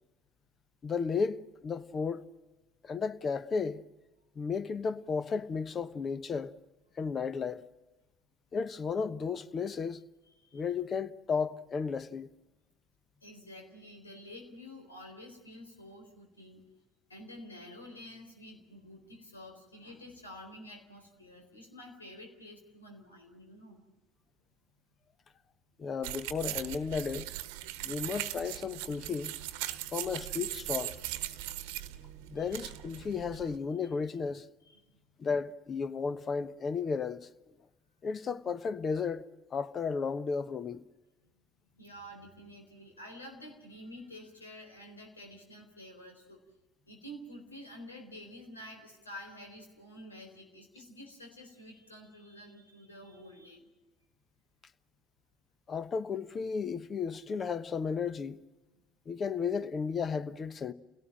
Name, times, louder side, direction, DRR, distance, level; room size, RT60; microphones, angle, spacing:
voice 1, 0.8-2.2 2.8-3.8 4.4-6.5 7.0-7.6 8.5-10.0 10.5-12.3 25.8-27.3 27.8-29.3 29.9-30.9 32.3-34.5 35.2-37.3 38.0-39.2 39.5-40.8 55.7-58.4 59.1-60.7, left 5 dB, 35° left, 1.1 m, -33 dB
voice 2, 10.3-10.6 13.2-16.6 17.1-23.8 27.7-28.1 32.4-32.6 34.6-35.0 41.7-46.4 46.9-53.7, left 1 dB, 85° left, 4.1 m, -49 dB
sound 1, 26.0-33.6, right 15 dB, 65° right, 1.1 m, -39 dB
30.0 x 17.5 x 7.6 m
figure-of-eight pair, 60°, 0 cm